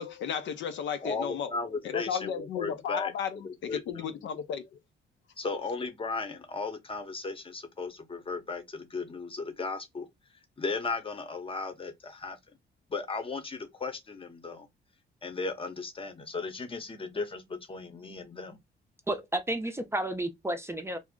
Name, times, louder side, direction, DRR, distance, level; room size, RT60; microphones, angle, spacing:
voice 1, 0.0-1.5 1.8-4.7, left 8 dB, 70° left, 0.5 m, -34 dB
voice 2, 1.0-3.1 3.4-4.1 5.4-10.1 10.6-12.4 12.9-14.7 15.2-18.6, left 4 dB, 25° left, 0.7 m, -36 dB
voice 3, 19.1-21.0, right 1 dB, 10° right, 0.5 m, -31 dB
2.4 x 2.0 x 3.6 m
cardioid pair, 90°, 20 cm